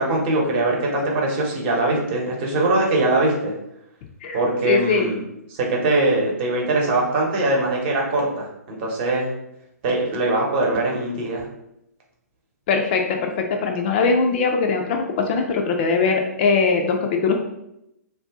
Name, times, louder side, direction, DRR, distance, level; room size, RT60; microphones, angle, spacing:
voice 1, 0.0-3.5 4.3-5.2 5.5-9.3 9.8-11.4, right 2 dB, 35° right, -1 dB, 0.9 m, -22 dB
voice 2, 4.2-5.1 12.7-17.4, left 4 dB, 40° left, 3 dB, 0.4 m, -21 dB
2.6 x 2.2 x 3.4 m, 0.83 s
hypercardioid pair, 130°, 9 cm